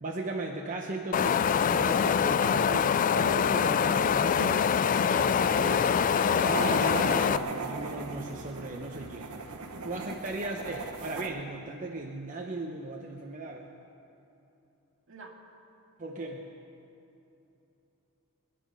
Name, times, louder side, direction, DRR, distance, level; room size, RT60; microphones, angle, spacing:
voice 1, 0.0-4.7 5.0-5.9 6.3-9.4 9.8-13.7 16.0-16.4, right 2 dB, 35° right, 0 dB, 0.9 m, -37 dB
Wind, 1.1-7.4, left 7 dB, 35° left, 0.3 m, -24 dB
voice 2, 5.1-6.3 15.1-15.3, right 3 dB, 60° right, 0 dB, 2.1 m, -48 dB
sound 1, 5.2-11.3, right 3 dB, 80° right, 1.2 m, -38 dB
23.0 x 9.6 x 5.6 m, 2.9 s
head